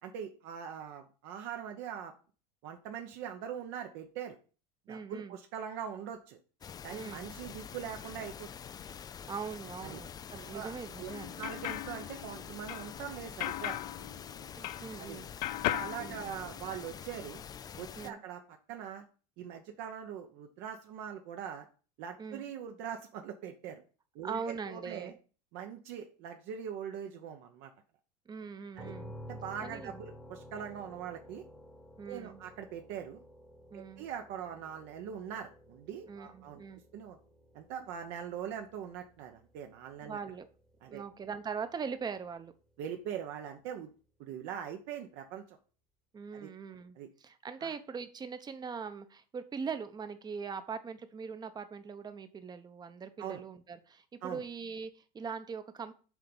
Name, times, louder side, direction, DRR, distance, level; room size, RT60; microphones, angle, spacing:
voice 1, 0.0-2.1 2.6-4.4 4.9-6.4 6.8-8.5 8.9-9.0 9.8-10.0 10.5-10.7 11.0-11.1 11.4-14.1 15.0-15.2 15.7-17.4 17.8-18.4 18.7-19.0 19.4-21.7 22.0-23.8 24.1-25.1 25.5-27.7 28.8-28.9 29.2-31.4 32.1-33.2 33.7-36.6 36.9-37.2 37.5-40.2 40.8-41.0 42.8-43.9 44.2-45.6 46.3-46.5 47.0-47.1 47.6-47.7 53.2-53.4 54.2-54.4, right 8 dB, 55° right, 4 dB, 1.0 m, -42 dB
voice 2, 4.9-5.4 6.9-7.3 9.3-11.5 14.6-15.3 16.0-16.3 18.0-18.2 22.2-22.4 24.2-25.1 28.3-29.1 29.6-30.0 32.0-32.4 33.7-34.1 36.1-36.8 40.0-40.5 40.9-42.5 46.1-55.9, right 6 dB, 20° right, 10 dB, 0.9 m, -41 dB
sound 1, 6.6-18.1, left 7 dB, 20° left, 0.4 m, -46 dB
sound 2, 11.1-15.1 15.4-16.9, left 14 dB, 80° left, 0.6 m, -38 dB
sound 3, 28.7-42.5, equal, ahead, 1.2 m, -53 dB
7.4 x 3.9 x 5.5 m, 0.37 s
supercardioid pair, 125°, 21 cm